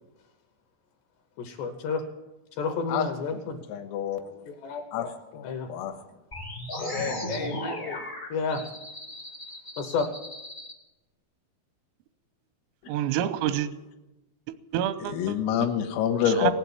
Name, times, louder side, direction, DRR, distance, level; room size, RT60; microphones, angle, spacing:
voice 1, 1.4-2.0 2.6-3.6 4.5-5.1 5.4-5.7 6.8-8.0 8.3-8.6 9.8-10.0, left 5 dB, 70° left, 2.8 m, -31 dB
voice 2, 2.9-3.4 3.7-4.2 4.9-5.1 5.3-6.0 15.1-16.5, left 9 dB, 90° left, 3.9 m, -27 dB
sound 1, 6.3-10.7, equal, 40° left, 0.6 m, -36 dB
voice 3, 12.9-13.7 14.5-15.7 16.3-16.5, right 11 dB, 85° right, 3.4 m, -28 dB
18.0 x 8.2 x 9.2 m
omnidirectional pair, 5.9 m